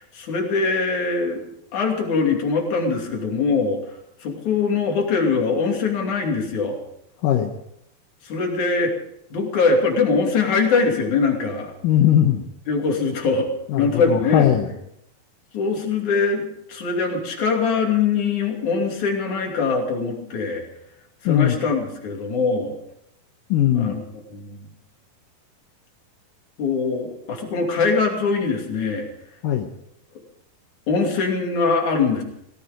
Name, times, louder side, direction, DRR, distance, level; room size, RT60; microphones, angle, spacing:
voice 1, 0.0-1.4 1.7-3.8 4.2-6.8 8.2-8.9 9.3-11.7 12.7-13.5 13.7-14.5 15.5-16.4 16.7-20.6 21.2-22.8 23.7-24.0 24.3-24.6 26.6-29.1 30.9-32.2, left 4 dB, 55° left, 1 dB, 4.0 m, -22 dB
voice 2, 7.2-7.5 11.8-12.4 13.7-14.8 21.3-21.6 23.5-24.0 29.4-29.7, left 11 dB, 70° left, 3 dB, 2.4 m, -19 dB
18.0 x 15.5 x 5.2 m, 0.79 s
omnidirectional pair, 4.4 m